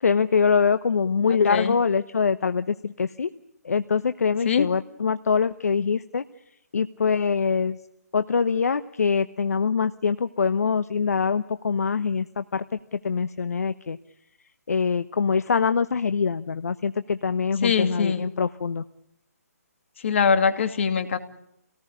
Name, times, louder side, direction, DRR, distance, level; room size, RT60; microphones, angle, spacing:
voice 1, 0.0-3.3 3.6-6.2 6.7-7.8 8.1-12.6 12.9-14.0 14.7-18.8, left 5 dB, 65° left, 12 dB, 0.9 m, -24 dB
voice 2, 17.6-18.3 20.0-21.2, left 6 dB, 50° left, 8 dB, 2.5 m, -22 dB
28.0 x 18.5 x 9.9 m, 0.82 s
figure-of-eight pair, 145°, 9 cm